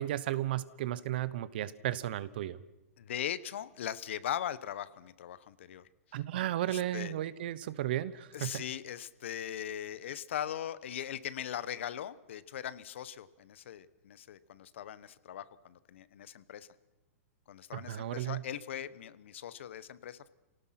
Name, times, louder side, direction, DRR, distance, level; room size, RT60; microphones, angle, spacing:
voice 1, 0.0-2.6 6.1-8.6 17.7-18.4, right 13 dB, 40° right, 17 dB, 1.0 m, -34 dB
voice 2, 3.0-6.2 6.7-7.1 8.3-16.7 17.5-20.3, left 10 dB, 55° left, 16 dB, 1.1 m, -40 dB
27.0 x 18.0 x 5.9 m, 1.0 s
hypercardioid pair, 175°, 8 cm